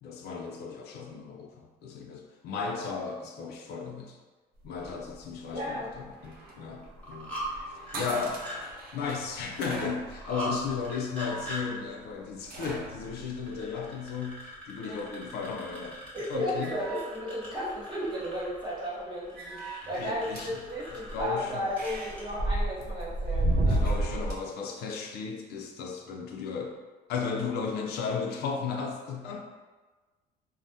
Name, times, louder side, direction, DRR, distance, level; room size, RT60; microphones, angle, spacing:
voice 1, 0.0-4.2 4.6-7.4 7.7-8.4 8.9-16.0 16.3-16.7 19.9-20.6 21.1-21.7 23.6-26.8 27.1-29.4, left 5 dB, 75° left, 2 dB, 0.4 m, -35 dB
sound 1, 4.6-14.4 15.7-16.1 16.4-17.7 18.0-18.7 19.3-24.4, right 1 dB, 65° right, 0.6 m, -35 dB
voice 2, 5.5-6.0 6.7-6.8 10.4-10.6 14.9-15.0 16.1-23.8, equal, 30° right, -7 dB, 1.1 m, -34 dB
sound 2, 6.8-7.5 7.8-8.6 10.1-10.5 10.8-11.6 13.0-22.3, right 1 dB, 10° left, 1.0 m, -42 dB
3.3 x 2.0 x 2.6 m, 1.3 s
cardioid pair, 110°, 17 cm